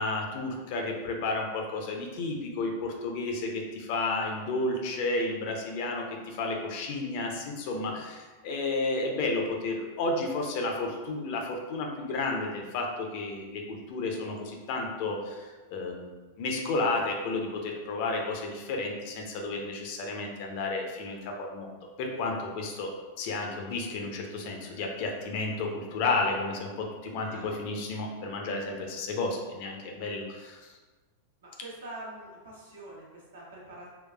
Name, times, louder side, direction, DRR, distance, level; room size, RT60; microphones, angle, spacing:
voice 1, 0.0-21.7 22.0-22.9 23.2-30.7, left 2 dB, 45° left, 1 dB, 0.5 m, -32 dB
voice 2, 31.4-33.9, right 1 dB, 65° right, -5 dB, 0.9 m, -44 dB
3.8 x 2.3 x 2.3 m, 1.3 s
figure-of-eight pair, 90°, 0 cm